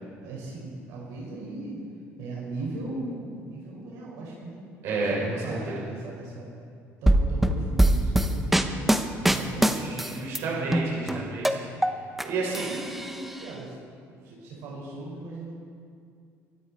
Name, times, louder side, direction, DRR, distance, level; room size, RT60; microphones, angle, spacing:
voice 1, 0.2-1.8 2.2-4.6 5.1-6.5 7.0-8.7 9.1-10.0 10.4-11.1 12.3-13.8 14.1-15.5, right 2 dB, 80° right, -4 dB, 5.1 m, -38 dB
voice 2, 4.8-5.8 9.7-11.6 12.2-12.8, right 3 dB, 60° right, -4 dB, 5.5 m, -31 dB
sound 1, 7.1-10.4 10.7-12.2 12.5-13.4, right 1 dB, 5° right, 0.7 m, -23 dB
23.0 x 13.5 x 4.3 m, 2.3 s
cardioid pair, 165°, 5 cm